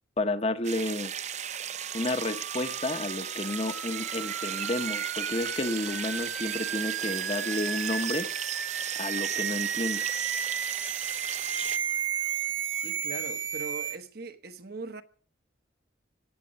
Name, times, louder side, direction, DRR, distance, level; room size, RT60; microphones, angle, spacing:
voice 1, 0.2-1.1 1.9-8.3 8.9-10.1, left 2 dB, 30° left, 1.0 m, -31 dB
sound 1, 0.6-11.8, right 9 dB, 35° right, 0.6 m, -36 dB
sound 2, 1.7-14.0, right 8 dB, 80° right, 1.3 m, -34 dB
voice 2, 12.7-15.0, right 3 dB, 50° right, 1.1 m, -41 dB
17.0 x 7.6 x 8.6 m
head